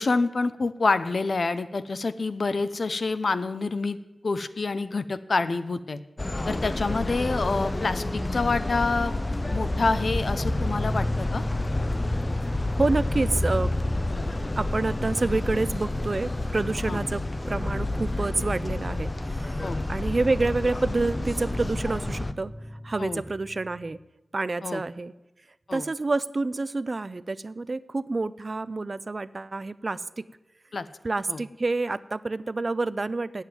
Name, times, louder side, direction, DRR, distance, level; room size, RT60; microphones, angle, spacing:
voice 1, 0.0-4.0 4.2-6.0 6.5-11.4 16.9-17.0 19.6-19.8 23.0-23.2 24.6-24.8 25.7-25.9 30.7-30.9 31.3-31.4, left 3 dB, 65° left, 12 dB, 0.6 m, -27 dB
sound 1, 6.2-22.3, left 2 dB, 25° left, 0.6 m, -29 dB
sound 2, 9.4-24.0, left 1 dB, 15° right, 0.9 m, -38 dB
voice 2, 12.7-13.7 14.6-22.5 22.8-24.0 24.3-25.1 25.7-30.2 31.0-33.4, right 3 dB, 45° right, 16 dB, 0.4 m, -28 dB
8.8 x 8.2 x 9.2 m, 0.97 s
wide cardioid pair, 70°, 0 cm